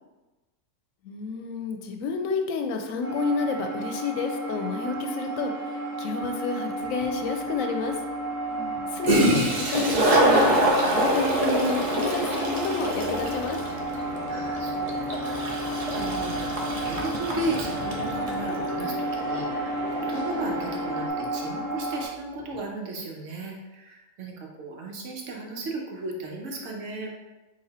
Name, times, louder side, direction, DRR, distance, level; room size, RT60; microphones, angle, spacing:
voice 1, 1.0-8.0 8.9-13.6, left 4 dB, 85° left, 5 dB, 1.0 m, -30 dB
sound 1, 3.0-22.1, right 1 dB, 15° left, 0.9 m, -32 dB
Toilet flush, 7.0-7.1 8.8-8.9 9.0-18.4, right 1 dB, 45° right, 0.5 m, -25 dB
voice 2, 8.5-9.0 14.3-27.1, right 2 dB, 70° right, 0 dB, 1.1 m, -36 dB
sound 2, 10.3-21.1, left 2 dB, 45° left, 0.5 m, -37 dB
4.0 x 2.7 x 4.1 m, 1.1 s
omnidirectional pair, 1.3 m